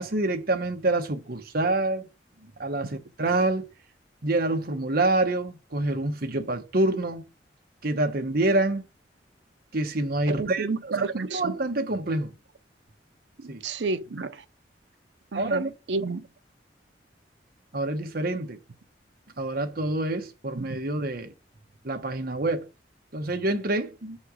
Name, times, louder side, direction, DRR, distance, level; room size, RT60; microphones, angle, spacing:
voice 1, 0.0-2.1 2.6-3.7 4.2-7.3 7.8-8.8 9.7-10.7 11.3-12.3 13.5-13.6 15.3-15.7 17.7-18.6 19.4-21.3 21.8-22.7 23.1-24.2, right 2 dB, 55° right, 1.0 m, -26 dB
voice 2, 10.3-11.6 13.4-14.4 15.3-16.3 20.6-20.8, right 4 dB, 80° right, 0.7 m, -31 dB
5.8 x 4.3 x 6.3 m
head